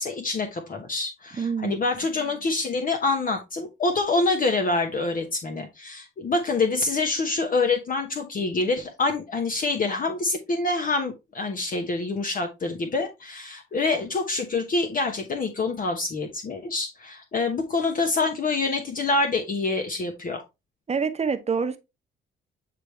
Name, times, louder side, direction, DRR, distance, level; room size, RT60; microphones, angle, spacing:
voice 1, 0.0-20.4, left 3 dB, 45° left, 1.1 m, -26 dB
voice 2, 1.3-1.8 20.9-21.8, right 5 dB, 35° right, 0.9 m, -26 dB
8.8 x 3.4 x 3.2 m
cardioid pair, 90°, 20 cm